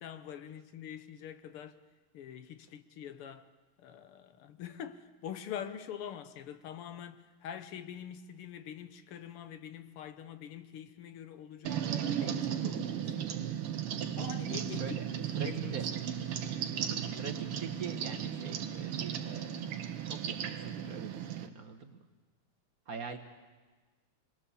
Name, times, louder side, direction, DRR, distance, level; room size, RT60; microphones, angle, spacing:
voice 1, 0.0-1.8 2.1-3.5 3.8-13.3 14.2-14.8 15.1-15.8, left 9 dB, 80° left, 1.9 m, -45 dB
sound 1, 11.6-21.5, right 9 dB, 85° right, 2.0 m, -35 dB
voice 2, 14.7-15.1 15.3-15.9 16.9-22.0 22.9-23.2, right 5 dB, 50° right, 1.4 m, -44 dB
26.5 x 21.0 x 7.0 m
omnidirectional pair, 2.4 m